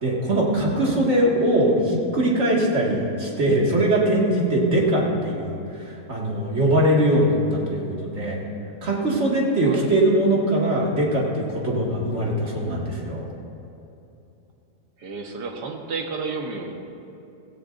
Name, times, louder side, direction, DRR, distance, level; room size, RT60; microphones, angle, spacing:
voice 1, 0.0-8.4 8.8-13.3, right 1 dB, 40° right, -3 dB, 2.3 m, -21 dB
voice 2, 15.0-16.7, right 4 dB, 75° right, 2 dB, 1.8 m, -31 dB
17.0 x 16.0 x 2.6 m, 2.8 s
omnidirectional pair, 1.8 m